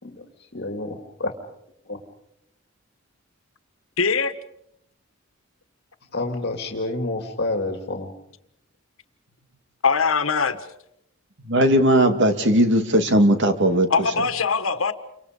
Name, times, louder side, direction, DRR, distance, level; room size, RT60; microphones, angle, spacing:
voice 1, 0.0-1.3 1.9-2.0 6.1-8.1, left 2 dB, 55° left, 2.4 m, -29 dB
voice 2, 4.0-4.3 9.8-10.6 13.9-14.9, left 5 dB, 75° left, 1.5 m, -21 dB
voice 3, 11.5-13.9, right 1 dB, 60° right, 2.3 m, -18 dB
29.5 x 25.0 x 5.1 m
head